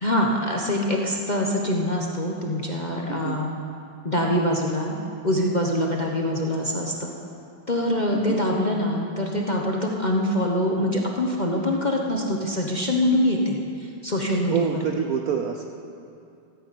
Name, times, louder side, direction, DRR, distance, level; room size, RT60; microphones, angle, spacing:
voice 1, 0.0-3.5 4.0-4.9 5.2-7.1 7.7-14.7, left 1 dB, 30° left, -1 dB, 0.9 m, -24 dB
voice 2, 3.1-3.4 8.1-8.4 14.5-15.6, right 7 dB, 65° right, 4 dB, 0.9 m, -27 dB
14.5 x 9.6 x 8.6 m, 2.6 s
omnidirectional pair, 2.2 m